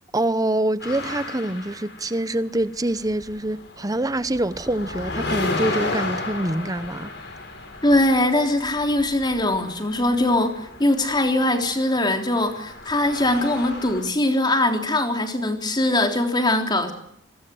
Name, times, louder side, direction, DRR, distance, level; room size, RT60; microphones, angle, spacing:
voice 1, 0.1-7.1, right 1 dB, 20° right, 1.0 m, -25 dB
sound 1, 0.8-2.6 2.9-14.0, left 3 dB, 60° left, 7.9 m, -33 dB
voice 2, 7.8-16.9, left 1 dB, 25° left, 3.7 m, -21 dB
27.0 x 22.0 x 7.9 m
head